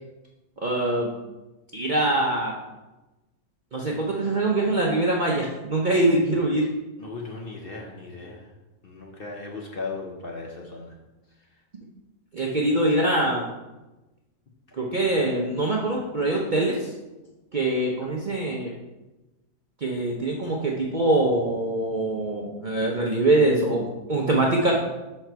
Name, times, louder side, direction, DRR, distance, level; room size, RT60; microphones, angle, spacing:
voice 1, 0.6-1.1 1.7-2.5 3.7-6.7 12.3-13.5 14.7-16.9 17.5-18.7 19.8-24.7, right 2 dB, 50° right, -2 dB, 0.6 m, -23 dB
voice 2, 7.0-8.5 8.8-11.0, left 3 dB, 50° left, 0 dB, 0.8 m, -37 dB
5.8 x 4.4 x 4.5 m, 1.1 s
omnidirectional pair, 1.6 m